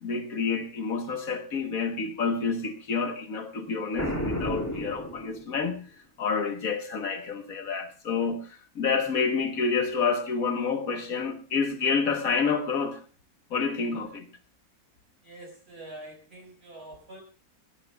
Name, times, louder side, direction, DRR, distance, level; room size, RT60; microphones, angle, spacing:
voice 1, 0.0-5.8 6.2-13.0 13.5-14.3, left 5 dB, 70° left, 1.7 m, -28 dB
Boom, 4.0-5.8, equal, 10° left, 2.7 m, -32 dB
voice 2, 15.2-17.2, right 1 dB, 40° right, 5.8 m, -45 dB
27.0 x 12.5 x 2.3 m
omnidirectional pair, 1.5 m